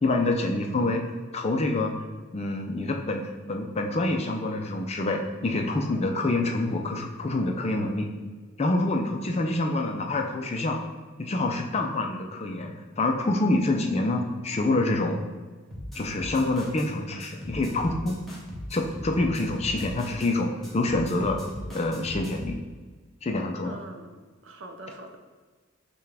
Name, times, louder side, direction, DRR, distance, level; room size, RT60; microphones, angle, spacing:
voice 1, 0.0-1.0 1.3-1.9 2.3-8.1 8.6-10.8 11.2-15.2 15.9-18.2 18.7-21.4 21.7-22.6 23.2-23.8, left 2 dB, 30° left, 3 dB, 0.3 m, -26 dB
sound 1, 15.7-16.9 17.2-20.3 20.6-22.6, equal, ahead, 0.7 m, -39 dB
voice 2, 23.6-24.1 24.4-25.2, right 2 dB, 60° right, 4 dB, 0.5 m, -43 dB
5.6 x 2.2 x 3.3 m, 1.4 s
head